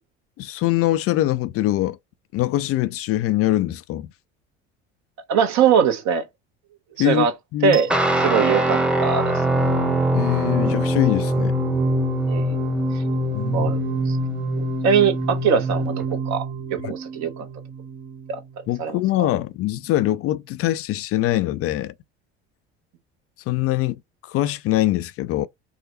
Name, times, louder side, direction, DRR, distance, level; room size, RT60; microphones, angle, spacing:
voice 1, 0.4-2.0 2.3-4.1 7.0-7.3 7.5-7.8 10.1-11.6 13.3-13.7 16.8-16.9 18.7-21.9 23.5-25.5, left 15 dB, 45° left, 0.4 m, -23 dB
voice 2, 5.3-6.2 7.0-7.3 7.6-7.9 8.2-9.4 12.3-12.6 12.9-13.0 13.5-14.2 14.8-15.9 16.3-16.4 16.7-17.4 18.3-18.4 18.8-19.3, right 7 dB, 55° right, 1.2 m, -21 dB
sound 1, 7.7-18.7, right 6 dB, 35° right, 0.8 m, -29 dB
Guitar, 7.9-16.0, left 1 dB, 5° right, 0.9 m, -24 dB
4.6 x 2.2 x 2.9 m
hypercardioid pair, 65°, 34 cm